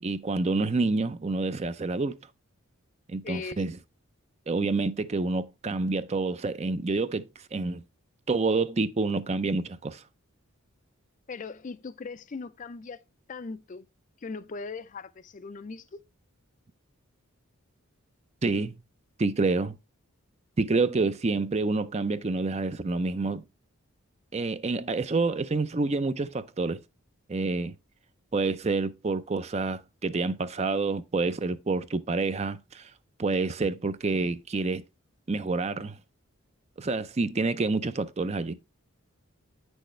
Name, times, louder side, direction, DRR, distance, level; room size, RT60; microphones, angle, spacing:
voice 1, 0.0-2.2 3.1-3.7 4.5-7.3 7.5-7.8 8.3-10.0 18.4-18.8 19.2-19.7 20.6-23.5 24.3-26.8 27.3-27.7 28.3-32.9 33.2-34.8 35.3-36.0 36.8-38.5, right 3 dB, 30° right, 0.5 m, -28 dB
voice 2, 3.2-3.6 11.3-13.0 13.3-13.9 14.2-16.0, left 4 dB, 35° left, 0.4 m, -39 dB
9.1 x 6.3 x 3.2 m
head